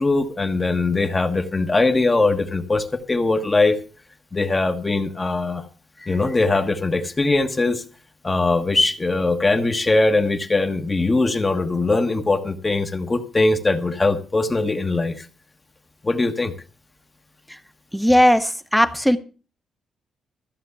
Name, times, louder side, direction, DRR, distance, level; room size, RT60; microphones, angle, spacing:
voice 1, 0.0-3.8 4.3-5.6 6.0-7.8 8.2-15.3 16.0-16.5, left 3 dB, 20° left, 1.2 m, -21 dB
voice 2, 17.9-19.2, equal, ahead, 0.9 m, -17 dB
14.0 x 7.4 x 6.9 m
cardioid pair, 130°, 0 cm